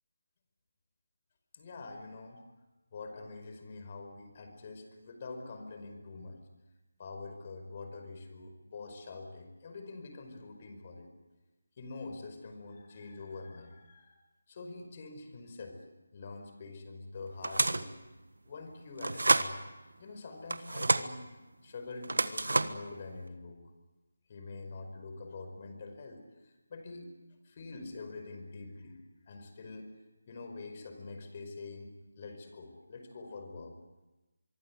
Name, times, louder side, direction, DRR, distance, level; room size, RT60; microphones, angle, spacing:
voice 1, 1.5-2.4 2.9-6.4 7.0-11.1 11.8-14.2 14.5-15.8 16.1-17.9 18.4-19.6 20.0-21.3 21.6-23.6 24.3-27.1 27.4-29.0 29.3-29.9 30.3-33.7, left 3 dB, 35° left, 6 dB, 5.1 m, -45 dB
sound 1, 17.4-17.9 19.0-19.5 20.5-21.1 22.0-22.9, right 2 dB, 80° right, 1.5 m, -28 dB
24.5 x 24.0 x 8.1 m, 1.1 s
figure-of-eight pair, 160°, 0 cm